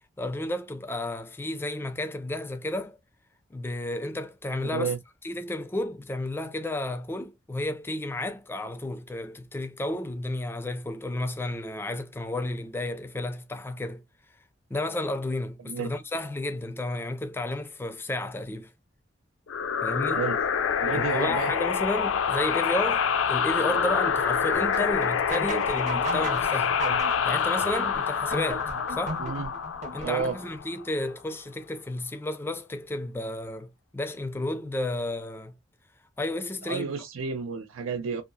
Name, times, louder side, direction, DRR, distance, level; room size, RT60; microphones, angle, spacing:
voice 1, 0.2-3.0 3.5-4.9 5.2-14.0 14.7-18.7 19.8-20.2 20.9-26.8 27.3-29.2 29.9-35.5 36.2-36.9, left 1 dB, 10° left, 0.3 m, -32 dB
sound 1, 19.5-30.8, left 6 dB, 80° left, 0.4 m, -26 dB
voice 2, 20.8-21.5 29.2-29.5 30.0-30.4 36.6-38.2, right 5 dB, 90° right, 0.5 m, -31 dB
sound 2, 24.5-30.4, right 2 dB, 35° right, 0.5 m, -37 dB
2.8 x 2.3 x 2.2 m
head